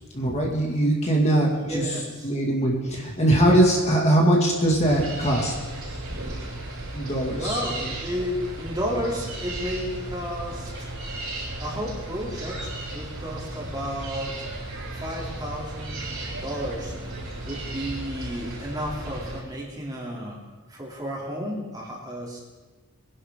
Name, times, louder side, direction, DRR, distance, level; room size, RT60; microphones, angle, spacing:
voice 1, 0.1-1.8 2.2-5.5 6.9-7.6, right 1 dB, 30° left, -2 dB, 2.1 m, -21 dB
voice 2, 1.5-2.3 7.3-10.9 11.6-14.5 14.9-16.1 16.4-16.9 17.4-20.4 20.7-22.4, equal, 20° right, -3 dB, 2.9 m, -32 dB
sound 1, 4.9-19.4, right 2 dB, 70° right, 6.0 m, -35 dB
23.0 x 11.0 x 3.7 m, 1.3 s
head